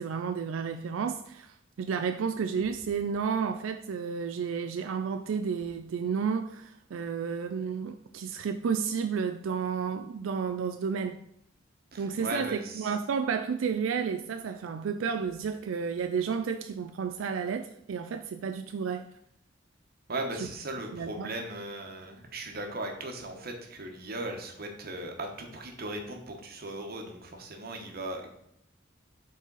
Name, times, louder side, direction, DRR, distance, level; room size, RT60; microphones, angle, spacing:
voice 1, 0.0-11.2 12.0-19.1 20.9-21.3, right 6 dB, 90° right, 7 dB, 0.4 m, -31 dB
voice 2, 11.9-13.0 20.1-28.3, right 2 dB, 50° right, 3 dB, 1.1 m, -37 dB
7.3 x 4.1 x 4.0 m, 0.74 s
head